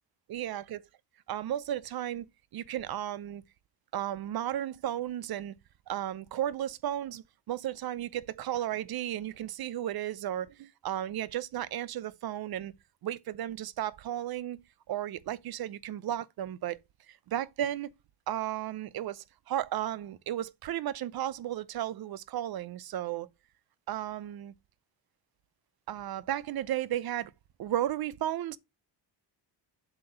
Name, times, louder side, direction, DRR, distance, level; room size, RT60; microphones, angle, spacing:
voice 1, 0.3-0.8 1.3-2.3 2.5-3.4 3.9-5.5 5.9-12.7 13.0-14.6 14.9-16.8 17.1-17.9 18.3-23.3 23.9-24.5 25.9-27.3 27.6-28.6, right 12 dB, 55° right, 0.6 m, -34 dB
7.7 x 2.9 x 5.4 m
cardioid pair, 90°, 45 cm